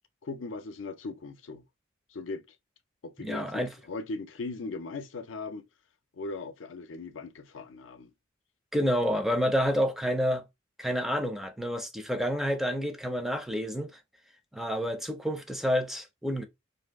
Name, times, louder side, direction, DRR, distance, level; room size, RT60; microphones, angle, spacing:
voice 1, 0.2-1.6 2.1-2.4 3.0-5.7 6.1-8.1, left 3 dB, 85° left, 0.5 m, -39 dB
voice 2, 3.2-3.7 8.7-10.4 10.8-13.9 14.5-16.4, equal, ahead, 0.4 m, -29 dB
2.6 x 2.3 x 3.4 m
head